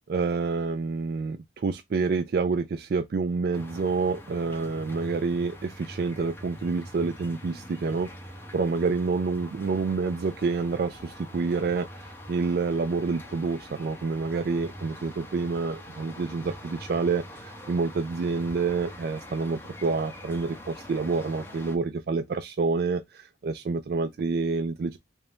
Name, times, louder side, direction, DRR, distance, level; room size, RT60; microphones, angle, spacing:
voice 1, 0.1-8.1 8.5-25.0, right 4 dB, 55° right, 0.3 m, -28 dB
sound 1, 3.5-21.8, equal, 10° left, 0.7 m, -44 dB
3.4 x 2.6 x 3.3 m
head